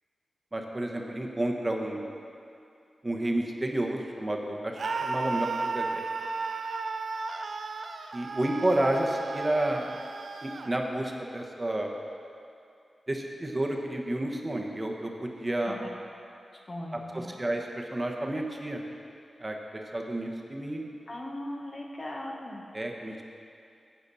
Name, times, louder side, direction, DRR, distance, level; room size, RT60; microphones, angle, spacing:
voice 1, 0.5-2.2 3.0-6.0 8.1-10.0 10.4-12.0 13.1-15.8 16.9-18.8 19.4-20.9 22.7-23.3, right 1 dB, 30° right, 1 dB, 1.1 m, -31 dB
Screaming, 4.8-10.7, right 4 dB, 70° right, 0.4 m, -34 dB
voice 2, 16.5-17.3 21.1-22.6, left 1 dB, 45° left, 0 dB, 1.2 m, -39 dB
10.0 x 7.8 x 4.2 m, 2.5 s
cardioid pair, 40°, 0 cm